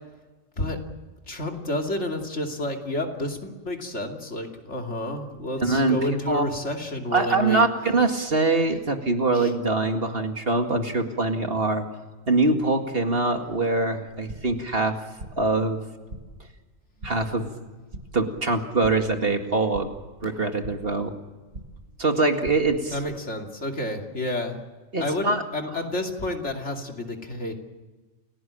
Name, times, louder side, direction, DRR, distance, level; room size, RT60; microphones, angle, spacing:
voice 1, 1.3-7.6 9.3-9.5 22.9-24.6 24.9-27.5, left 1 dB, 60° left, 3 dB, 3.1 m, -30 dB
voice 2, 5.6-6.0 6.3-6.4 7.1-11.9 12.3-15.0 15.4-15.8 17.0-17.5 18.1-19.9 20.2-21.1 22.0-23.0 24.9-25.4, right 3 dB, 50° right, 5 dB, 2.3 m, -23 dB
sound 1, 14.2-14.6 14.9-15.5 15.8-16.5 16.7-17.3 17.6-18.3 18.6-19.2 19.4-21.0 21.3-21.9 22.2-23.0, right 1 dB, 70° right, 6.6 m, -43 dB
29.0 x 17.5 x 8.9 m, 1.3 s
omnidirectional pair, 1.3 m